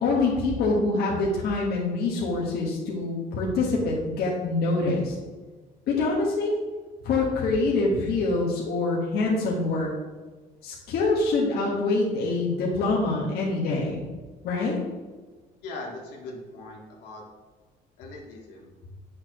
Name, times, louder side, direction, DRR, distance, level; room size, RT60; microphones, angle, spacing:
voice 1, 0.0-5.1 5.9-6.6 7.0-9.9 10.6-14.0 14.4-14.8, left 3 dB, 70° left, -4 dB, 1.6 m, -25 dB
voice 2, 15.6-17.2 18.0-18.7, left 2 dB, 85° left, -2 dB, 1.8 m, -40 dB
8.6 x 6.5 x 3.1 m, 1.3 s
cardioid pair, 110°, 17 cm